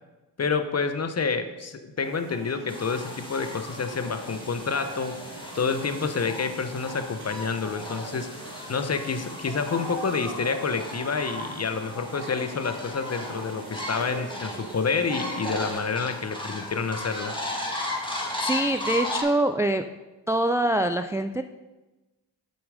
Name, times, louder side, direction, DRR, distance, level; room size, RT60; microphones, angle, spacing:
voice 1, 0.4-5.2 5.5-8.3 8.7-17.4, left 5 dB, 35° left, 9 dB, 0.9 m, -28 dB
sound 1, 2.0-15.7, right 2 dB, 85° right, 1.6 m, -42 dB
sound 2, 2.7-19.2, left 1 dB, 10° left, 2.1 m, -36 dB
voice 2, 18.4-19.8 20.3-21.4, right 1 dB, 5° right, 8 dB, 0.3 m, -24 dB
7.3 x 6.0 x 5.0 m, 1.1 s
supercardioid pair, 55°, 42 cm